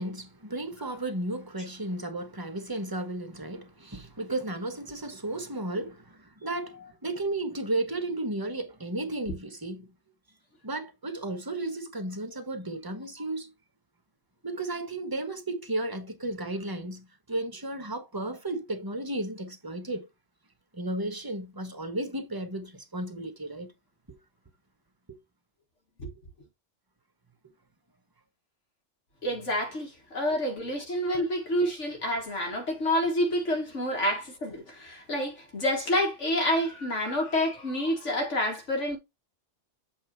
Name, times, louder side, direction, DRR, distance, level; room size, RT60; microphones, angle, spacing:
voice 1, 0.0-9.9 10.6-13.5 14.4-20.1 20.7-23.7 24.1-24.2 25.1-25.2 31.1-31.2, right 2 dB, 20° right, 1.2 m, -34 dB
voice 2, 29.2-39.0, equal, 80° left, 2.1 m, -28 dB
7.6 x 3.6 x 4.5 m
omnidirectional pair, 1.2 m